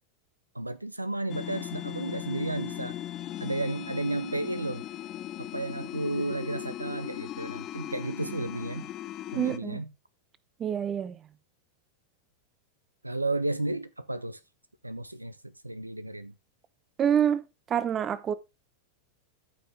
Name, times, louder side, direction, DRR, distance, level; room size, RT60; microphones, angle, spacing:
voice 1, 0.5-3.0 3.4-4.8 5.4-8.9 9.3-9.9 13.0-14.4 14.8-15.4 15.6-16.3, right 2 dB, 85° right, 0.6 m, -32 dB
sound 1, 1.3-9.6, left 13 dB, 30° left, 0.7 m, -38 dB
voice 2, 9.3-9.8 10.6-11.2 17.0-17.4 17.7-18.3, right 9 dB, 25° right, 0.8 m, -26 dB
13.0 x 5.7 x 3.6 m
figure-of-eight pair, 90°, 0 cm